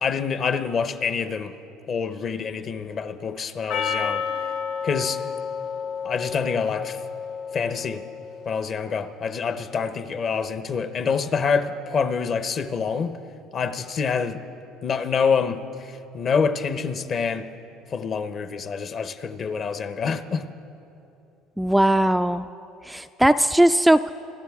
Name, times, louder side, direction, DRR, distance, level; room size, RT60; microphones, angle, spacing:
voice 1, 0.0-1.5 1.9-4.2 4.8-5.2 6.0-7.0 7.5-8.0 8.5-13.1 13.5-14.4 14.8-17.5 17.9-20.4, left 5 dB, 45° left, 11 dB, 0.8 m, -26 dB
Percussion, 3.7-8.2, left 6 dB, 75° left, 2.2 m, -30 dB
voice 2, 21.6-22.5 22.8-24.1, right 1 dB, 5° right, 9 dB, 0.3 m, -19 dB
26.5 x 12.5 x 3.6 m, 2.9 s
supercardioid pair, 100°, 0 cm